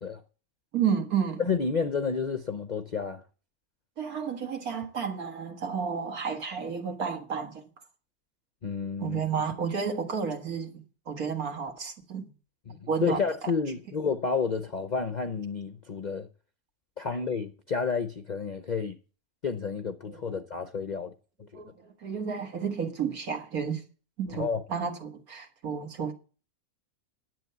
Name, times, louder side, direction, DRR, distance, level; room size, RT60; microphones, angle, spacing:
voice 1, 0.7-1.5 4.0-7.6 9.0-10.7 11.1-12.3 12.9-13.2 20.1-20.4 21.5-23.8 24.2-26.1, right 6 dB, 70° right, 2.1 m, -31 dB
voice 2, 1.5-3.2 8.6-9.4 12.7-16.3 17.0-19.0 19.4-21.1 21.5-21.6 24.3-24.6, left 5 dB, 50° left, 0.5 m, -30 dB
10.5 x 7.9 x 6.7 m
omnidirectional pair, 1.6 m